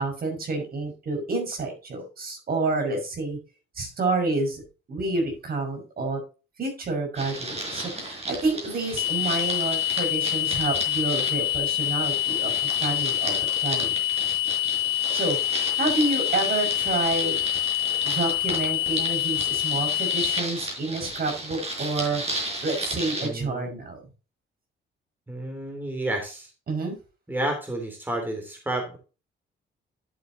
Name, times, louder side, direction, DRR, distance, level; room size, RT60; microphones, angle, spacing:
voice 1, 0.0-3.4 3.8-4.6 4.9-6.2 6.6-14.0 15.1-15.4 15.8-17.4 18.0-22.2 22.6-24.0 26.7-27.0, right 3 dB, 50° right, 3 dB, 5.8 m, -29 dB
sound 1, 7.2-23.3, right 1 dB, 30° right, 5.1 m, -34 dB
sound 2, 9.0-20.4, left 15 dB, 85° left, 0.8 m, -26 dB
voice 2, 23.2-23.7 25.3-26.5 27.3-29.0, right 1 dB, 10° right, 2 dB, 3.2 m, -30 dB
11.5 x 7.8 x 2.8 m, 0.33 s
cardioid pair, 90°, 20 cm